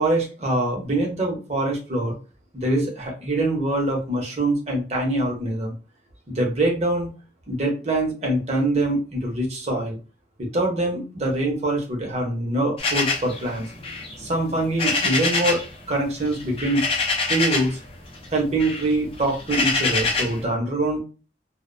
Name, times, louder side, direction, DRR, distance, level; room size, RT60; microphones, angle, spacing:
voice 1, 0.0-2.2 2.5-5.7 6.3-7.1 7.5-10.0 10.4-13.6 14.2-16.9 17.3-17.8 18.3-21.0, right 2 dB, 35° right, 0 dB, 0.8 m, -24 dB
sound 1, 12.8-15.7 16.0-17.8 18.1-20.4, left 3 dB, 30° left, 0.4 m, -25 dB
2.5 x 2.1 x 2.5 m, 0.33 s
head